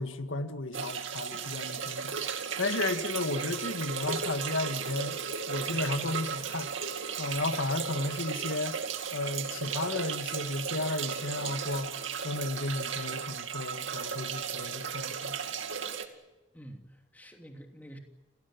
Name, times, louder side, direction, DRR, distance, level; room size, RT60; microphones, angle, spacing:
voice 1, 0.0-2.2 2.6-5.2 5.5-6.7 7.2-8.8 9.1-15.4, left 2 dB, 80° left, 1.9 m, -33 dB
sound 1, 0.7-16.1, right 6 dB, 80° right, 2.4 m, -35 dB
voice 2, 16.5-18.0, right 1 dB, 10° left, 2.9 m, -49 dB
29.5 x 17.5 x 9.4 m
head